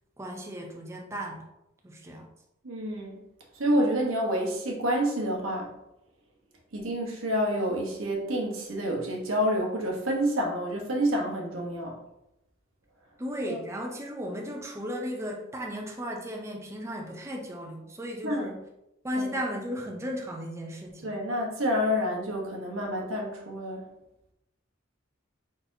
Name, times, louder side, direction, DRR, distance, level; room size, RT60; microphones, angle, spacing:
voice 1, 0.2-1.4 1.8-2.3 13.2-18.6 19.0-21.1, equal, 15° right, 0 dB, 0.5 m, -35 dB
voice 2, 2.6-3.2 3.6-5.7 6.7-12.0 13.5-13.6 18.2-18.5 19.2-19.3 21.0-23.8, equal, 85° right, 0 dB, 1.0 m, -28 dB
4.2 x 4.0 x 2.6 m, 0.86 s
head